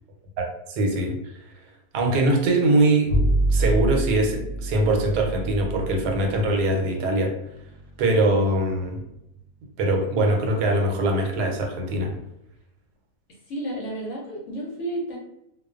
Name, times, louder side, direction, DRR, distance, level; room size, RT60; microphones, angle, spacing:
voice 1, 0.4-1.3 1.9-3.1 3.5-7.3 8.0-9.0 9.8-12.1, right 1 dB, 90° right, 3 dB, 1.2 m, -22 dB
Bowed string instrument, 3.1-9.6, right 2 dB, 65° right, 0.9 m, -28 dB
voice 2, 13.5-15.2, right 1 dB, 65° left, -3 dB, 0.8 m, -31 dB
2.4 x 2.3 x 2.3 m, 0.83 s
omnidirectional pair, 1.7 m